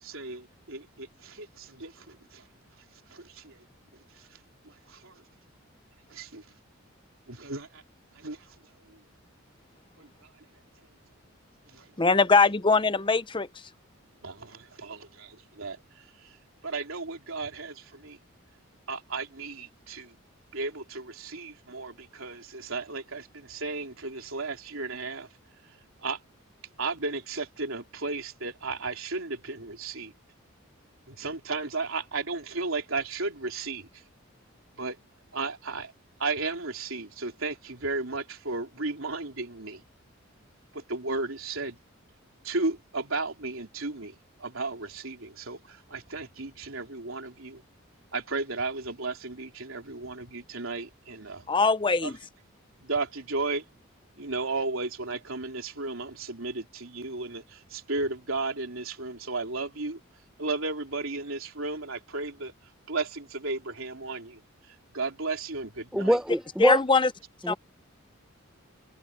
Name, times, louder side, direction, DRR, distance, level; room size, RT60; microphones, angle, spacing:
voice 1, 0.0-2.4 3.1-3.6 4.6-5.2 6.1-6.4 7.3-7.8 8.1-8.5 8.9-9.0 10.0-10.1 11.7-11.8 14.2-15.8 16.6-18.2 18.9-20.1 20.5-25.3 26.0-26.2 26.8-30.1 31.1-33.9 34.8-35.0 35.3-35.9 36.2-39.8 40.7-41.8 42.4-44.1 44.4-47.6 48.1-51.5 52.0-52.1 52.8-53.6 54.2-60.0 60.4-62.5 62.9-64.4 64.9-66.2, right 3 dB, 75° right, 3.4 m, -34 dB
voice 2, 12.0-13.5 51.5-52.2 66.6-67.1 67.5-67.6, left 4 dB, 25° left, 0.7 m, -22 dB
voice 3, 65.9-66.8 67.4-67.5, equal, 5° right, 0.9 m, -24 dB
head